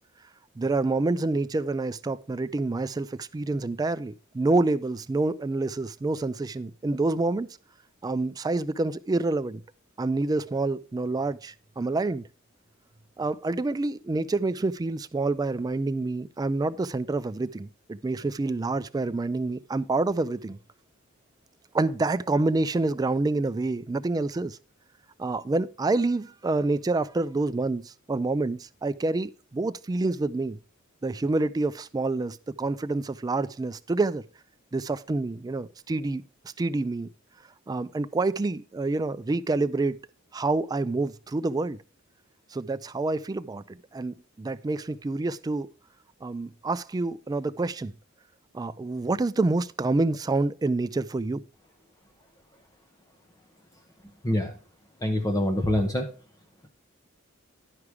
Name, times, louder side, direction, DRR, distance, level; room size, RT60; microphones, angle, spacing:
voice 1, 0.6-7.5 8.0-9.6 10.0-12.2 13.2-20.6 21.7-24.6 25.2-30.6 31.0-34.2 34.7-36.2 36.6-37.1 37.7-40.0 40.3-41.8 42.5-45.7 46.2-47.9 48.5-51.4, right 2 dB, 20° right, 0.3 m, -27 dB
voice 2, 54.2-54.5 55.0-56.1, left 1 dB, 15° left, 0.8 m, -25 dB
11.0 x 4.9 x 4.7 m
head